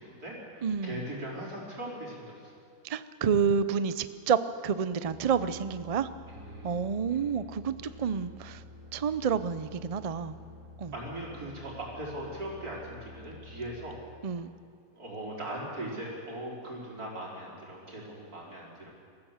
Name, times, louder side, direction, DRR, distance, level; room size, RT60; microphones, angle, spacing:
voice 1, 0.0-2.5 6.3-6.7 7.1-7.3 7.9-8.0 10.9-14.0 14.9-18.9, right 1 dB, 90° right, -4 dB, 5.0 m, -40 dB
voice 2, 0.6-1.0 2.8-6.1 6.6-8.6 8.9-10.4 10.8-10.9 14.2-14.5, right 6 dB, 55° right, 13 dB, 0.4 m, -29 dB
sound 1, 5.0-14.0, left 2 dB, 70° right, 2.8 m, -50 dB
24.0 x 15.0 x 7.4 m, 2.2 s
omnidirectional pair, 1.6 m